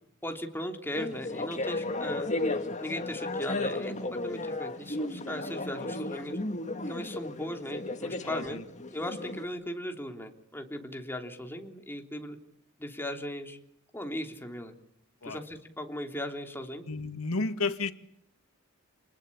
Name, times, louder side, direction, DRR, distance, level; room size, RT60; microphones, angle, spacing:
voice 1, 0.2-2.3 2.8-3.9 4.2-6.4 6.9-8.6 8.9-12.4 12.8-13.6 13.9-14.7 15.2-16.8, left 1 dB, 10° left, 4 dB, 3.3 m, -38 dB
sound 1, 0.9-9.4, left 2 dB, 35° left, 2.2 m, -34 dB
voice 2, 8.2-8.6 15.2-15.4 16.9-17.9, left 3 dB, 85° left, 10 dB, 2.0 m, -32 dB
28.5 x 21.0 x 8.7 m, 0.71 s
head